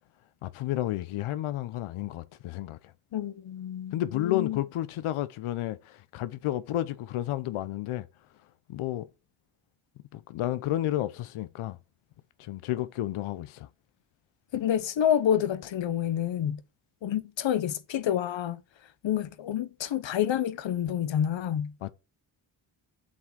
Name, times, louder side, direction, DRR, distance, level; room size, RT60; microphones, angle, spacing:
voice 1, 0.4-2.8 3.9-8.1 8.7-9.1 10.1-11.8 12.4-13.7 21.8-21.9, left 14 dB, 90° left, 0.6 m, -31 dB
voice 2, 3.1-4.6 14.5-16.6 17.0-18.6 19.0-21.7, left 10 dB, 65° left, 0.9 m, -28 dB
7.7 x 3.6 x 6.2 m
cardioid pair, 55°, 49 cm